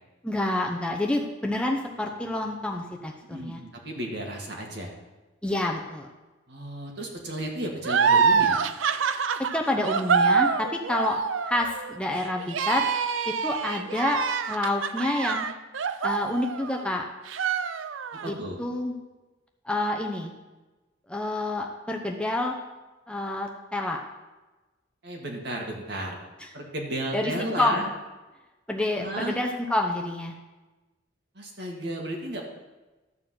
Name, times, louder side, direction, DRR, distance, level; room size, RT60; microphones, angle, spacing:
voice 1, 0.2-3.6 5.4-6.1 9.5-12.9 13.3-14.2 14.5-15.5 16.0-17.0 18.3-18.9 19.6-20.3 21.1-22.6 23.1-24.0 27.1-27.8 28.7-30.4, left 1 dB, 5° left, 1 dB, 0.8 m, -28 dB
voice 2, 3.2-3.6 3.8-4.9 6.5-8.6 18.1-18.6 25.0-26.2 26.5-27.8 29.0-29.4 31.4-32.4, right 1 dB, 60° right, 0 dB, 2.0 m, -33 dB
sound 1, 7.8-16.9 17.3-18.3, right 6 dB, 85° right, 0.5 m, -26 dB
12.5 x 4.7 x 7.7 m, 1.2 s
head